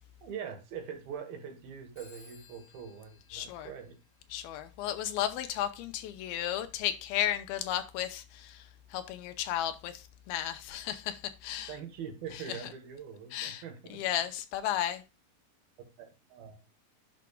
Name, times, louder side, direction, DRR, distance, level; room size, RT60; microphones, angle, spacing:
voice 1, 0.2-4.0 11.7-14.0 16.0-16.6, right 7 dB, 75° right, 3.1 m, -43 dB
Telephone, 2.0-4.5, left 3 dB, 50° left, 4.9 m, -59 dB
voice 2, 3.3-3.7 4.3-11.7 12.3-12.6 13.3-13.6 13.9-15.0, left 11 dB, 85° left, 2.5 m, -34 dB
10.5 x 6.0 x 2.3 m
omnidirectional pair, 4.4 m